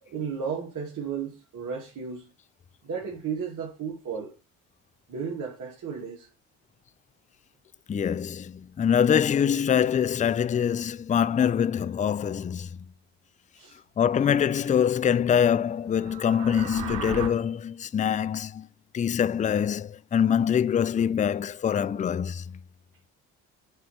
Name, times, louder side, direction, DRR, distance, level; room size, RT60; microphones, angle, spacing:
voice 1, 0.0-2.3 2.8-4.3 5.1-6.3 13.5-13.8, right 6 dB, 55° right, 2.4 m, -34 dB
voice 2, 7.9-12.7 14.0-18.7 18.9-22.4, left 8 dB, 20° left, 0.4 m, -24 dB
sound 1, 15.9-17.3, right 4 dB, 75° right, 3.8 m, -35 dB
8.0 x 3.2 x 5.7 m
supercardioid pair, 60°, 36 cm